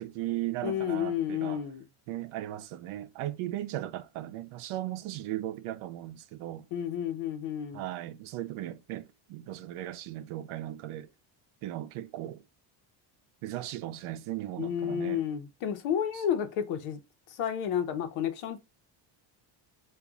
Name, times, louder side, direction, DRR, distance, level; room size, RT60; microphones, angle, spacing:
voice 1, 0.0-1.6 2.1-6.7 7.7-11.1 11.6-12.4 13.4-15.2 16.1-16.2, right 14 dB, 80° right, 0.7 m, -37 dB
voice 2, 0.6-1.9 6.7-7.8 14.6-17.0 17.3-18.6, left 9 dB, 85° left, 1.0 m, -31 dB
3.5 x 2.6 x 3.8 m
cardioid pair, 130°, 48 cm